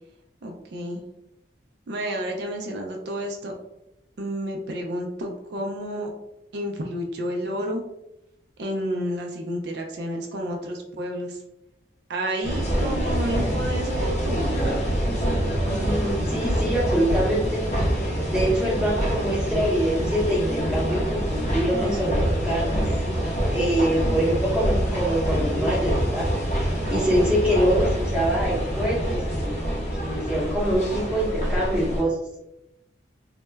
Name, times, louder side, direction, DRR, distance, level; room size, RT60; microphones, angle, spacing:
voice 1, 0.4-1.0 1.9-3.5 4.2-6.1 6.5-7.8 8.6-11.4 12.1-14.5 26.8-27.2, equal, 65° right, 1 dB, 0.4 m, -30 dB
sound 1, 12.4-32.0, equal, 40° left, 0.6 m, -25 dB
voice 2, 15.7-17.6 18.3-22.8 23.5-26.3 26.6-29.6 30.0-32.1, equal, 5° right, -6 dB, 0.7 m, -25 dB
2.1 x 2.1 x 3.2 m, 0.89 s
head